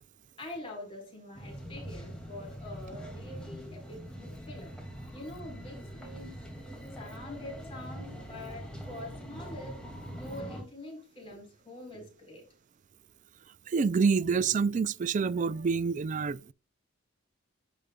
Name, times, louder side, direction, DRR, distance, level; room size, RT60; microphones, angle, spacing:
voice 1, 0.4-4.7 5.1-6.4 7.0-9.8 10.1-12.4, left 1 dB, 25° left, 4.1 m, -45 dB
sound 1, 1.3-10.6, equal, 5° left, 2.1 m, -43 dB
voice 2, 13.7-16.5, right 5 dB, 40° right, 0.3 m, -27 dB
15.0 x 5.2 x 2.3 m
head